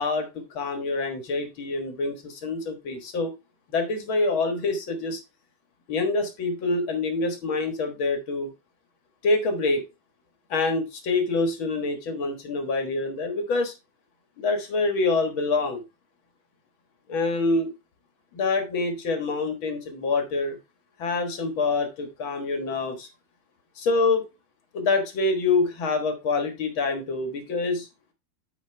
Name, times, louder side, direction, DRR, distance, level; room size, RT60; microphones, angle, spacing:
voice 1, 0.0-3.3 3.7-5.2 5.9-8.5 9.2-9.8 10.5-13.7 14.4-15.8 17.1-17.7 18.3-20.6 21.0-23.1 23.8-24.2 24.7-27.9, left 3 dB, 50° left, 1.5 m, -26 dB
10.5 x 4.9 x 3.3 m
omnidirectional pair, 4.2 m